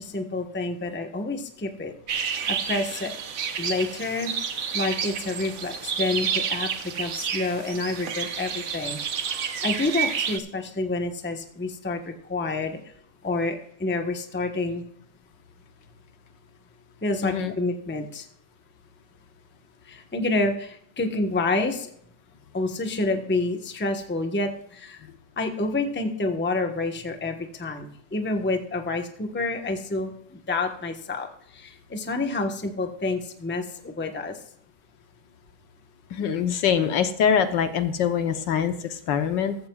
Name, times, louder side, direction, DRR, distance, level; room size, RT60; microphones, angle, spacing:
voice 1, 0.0-3.1 3.6-4.3 4.7-12.8 13.2-14.8 17.0-18.3 19.8-21.9 22.5-25.0 25.4-34.4, left 2 dB, 10° left, 5 dB, 0.9 m, -28 dB
sound 1, 2.1-10.4, right 7 dB, 55° right, 1.2 m, -30 dB
voice 2, 17.2-17.5 36.1-39.6, left 8 dB, 75° left, 9 dB, 1.6 m, -24 dB
15.0 x 14.0 x 2.4 m, 0.68 s
omnidirectional pair, 2.0 m